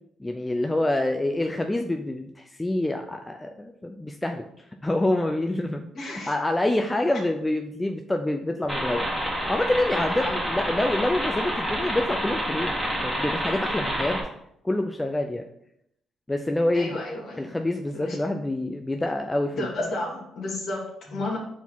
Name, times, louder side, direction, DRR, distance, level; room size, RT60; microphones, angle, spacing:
voice 1, 0.2-4.5 4.8-9.0 9.5-12.7 13.0-14.3 14.6-15.4 16.3-17.0 17.4-19.7, left 1 dB, 15° left, 4 dB, 0.5 m, -26 dB
voice 2, 5.9-6.3 7.1-7.2 10.1-10.4 16.7-17.5 17.9-18.2 19.5-21.4, left 2 dB, 65° left, -3 dB, 2.3 m, -32 dB
sound 1, 8.7-14.2, equal, 5° right, 2.1 m, -28 dB
4.8 x 4.1 x 5.5 m, 0.74 s
cardioid pair, 90°, 0 cm